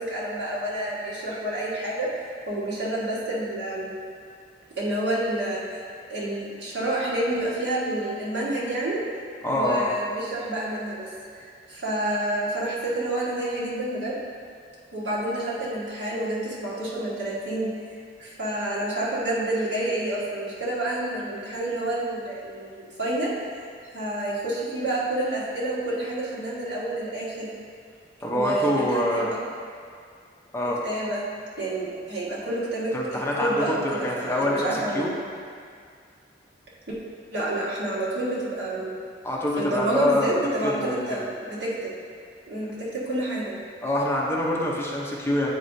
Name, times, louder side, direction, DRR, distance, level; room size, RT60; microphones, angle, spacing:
voice 1, 0.0-2.1 2.5-3.9 4.8-5.8 6.1-9.0 9.4-11.1 11.3-14.1 14.9-17.7 18.2-23.3 23.9-27.5 28.3-29.3 30.8-31.2 31.6-35.1 36.9-37.0 37.3-38.9 39.6-41.9 42.5-43.5, right 1 dB, 80° right, -7 dB, 1.5 m, -29 dB
voice 2, 9.4-9.9 28.2-29.3 30.5-30.8 32.9-35.1 39.2-40.4 40.6-41.3 43.8-45.5, left 1 dB, 15° left, -4 dB, 0.7 m, -25 dB
8.8 x 4.8 x 2.7 m, 2.2 s
head